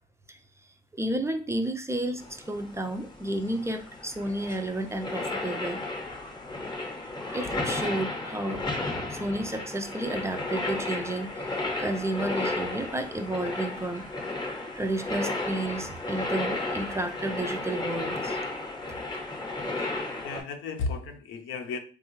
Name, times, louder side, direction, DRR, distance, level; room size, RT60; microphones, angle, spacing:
voice 1, 0.9-5.8 7.2-11.4 11.8-14.1 14.7-18.4, right 1 dB, 15° right, 6 dB, 0.4 m, -32 dB
sound 1, 2.2-20.4, left 2 dB, 20° left, 0.7 m, -33 dB
voice 2, 19.6-21.8, left 4 dB, 80° left, 6 dB, 0.6 m, -35 dB
3.4 x 2.3 x 3.0 m, 0.38 s
cardioid pair, 90°, 20 cm